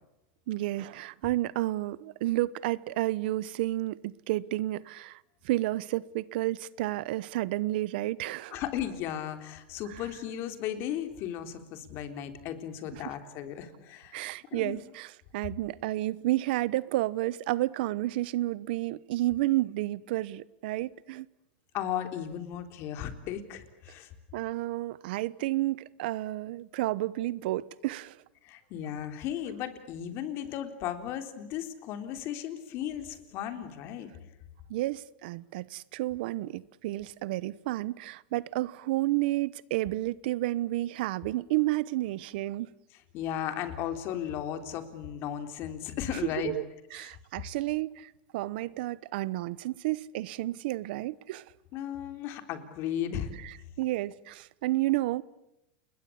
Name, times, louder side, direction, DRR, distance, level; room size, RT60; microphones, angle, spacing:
voice 1, 0.5-5.2 5.4-8.5 12.9-13.1 14.1-21.3 24.3-28.2 34.7-42.7 46.4-46.6 46.9-51.5 53.4-55.2, right 17 dB, 70° right, 0.9 m, -31 dB
voice 2, 8.5-14.8 21.7-24.1 28.4-34.1 43.1-46.5 46.9-47.1 51.7-53.3, left 10 dB, 45° left, 3.7 m, -35 dB
30.0 x 21.0 x 8.6 m
supercardioid pair, 140°, 6 cm